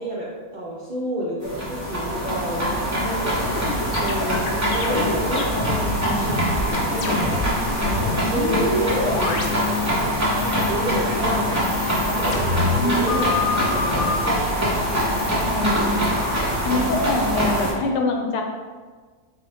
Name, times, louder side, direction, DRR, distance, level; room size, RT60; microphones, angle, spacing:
voice 1, 0.0-10.1 10.4-14.7, right 1 dB, 80° right, -6 dB, 0.4 m, -30 dB
sound 1, 1.4-17.7, equal, 15° right, 0.6 m, -24 dB
sound 2, 3.6-7.5 7.8-10.1 10.4-11.0 11.5-14.2 14.9-16.1, left 2 dB, 70° left, 0.9 m, -27 dB
voice 2, 15.4-16.2 16.6-18.4, left 2 dB, 85° left, 2 dB, 1.2 m, -24 dB
3.9 x 2.1 x 4.1 m, 1.5 s
omnidirectional pair, 1.7 m